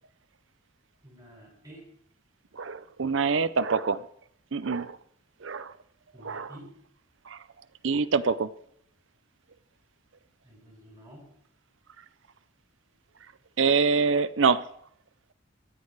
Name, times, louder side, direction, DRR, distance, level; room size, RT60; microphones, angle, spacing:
voice 1, 1.0-1.8 6.1-6.7 10.4-11.3, equal, 20° right, -3 dB, 7.8 m, -49 dB
voice 2, 2.5-4.0 4.5-5.0 5.4-5.7 6.2-6.5 7.3-7.4 7.8-8.5 13.6-14.7, right 5 dB, 65° right, 13 dB, 0.6 m, -25 dB
24.5 x 8.6 x 4.8 m, 0.68 s
head